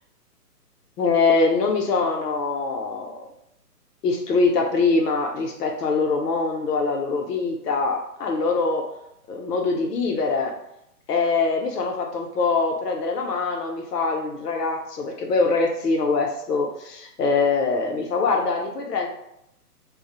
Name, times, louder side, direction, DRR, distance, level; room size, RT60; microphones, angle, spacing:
voice 1, 1.0-3.2 4.0-8.9 9.3-10.5 11.1-19.1, left 4 dB, 75° left, 2 dB, 0.7 m, -23 dB
2.2 x 2.0 x 2.8 m, 0.78 s
hypercardioid pair, 160°, 48 cm